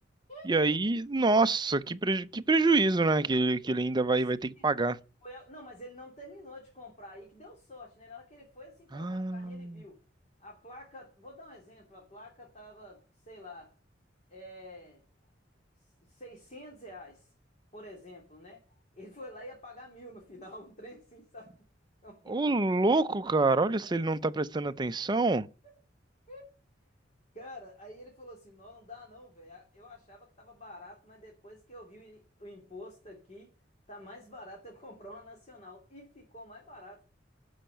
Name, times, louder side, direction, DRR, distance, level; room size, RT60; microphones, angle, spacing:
voice 1, 0.4-5.0 8.9-9.8 22.3-25.5, right 3 dB, 25° right, 0.5 m, -26 dB
voice 2, 5.2-10.0 10.4-13.7 14.3-15.0 16.0-17.3 17.7-18.6 19.0-21.7 22.0-22.4 23.2-24.0 26.3-26.5 27.3-33.5 33.9-37.0, left 1 dB, 35° left, 3.1 m, -48 dB
11.5 x 5.6 x 8.9 m
head